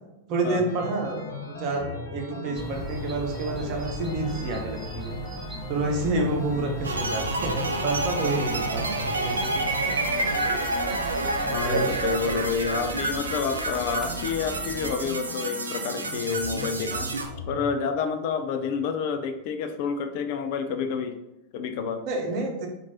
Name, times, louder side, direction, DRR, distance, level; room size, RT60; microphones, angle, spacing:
voice 1, 0.3-5.2 5.7-9.5 11.4-12.4 22.1-22.7, right 2 dB, 40° right, 1 dB, 0.8 m, -29 dB
sound 1, 0.7-17.7, left 2 dB, 65° left, 1.0 m, -38 dB
sound 2, 2.5-15.0, right 2 dB, 10° right, 0.7 m, -40 dB
sound 3, 6.8-17.3, right 2 dB, 75° right, 0.4 m, -29 dB
voice 2, 11.5-17.1 17.5-21.2 21.5-22.0, left 6 dB, 45° left, 7 dB, 0.4 m, -29 dB
4.4 x 2.6 x 2.8 m, 0.94 s
figure-of-eight pair, 90°, 0 cm